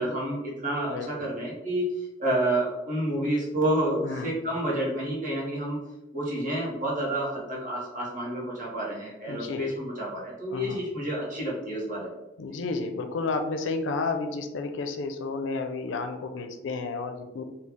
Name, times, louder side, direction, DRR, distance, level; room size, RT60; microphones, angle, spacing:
voice 1, 0.0-1.9 2.2-5.8 6.1-12.1, right 1 dB, 45° right, -4 dB, 1.1 m, -29 dB
voice 2, 0.9-1.3 4.0-4.3 9.3-9.6 10.5-10.8 12.4-17.4, left 3 dB, 80° left, 6 dB, 0.4 m, -31 dB
3.2 x 2.3 x 3.6 m, 1.0 s
head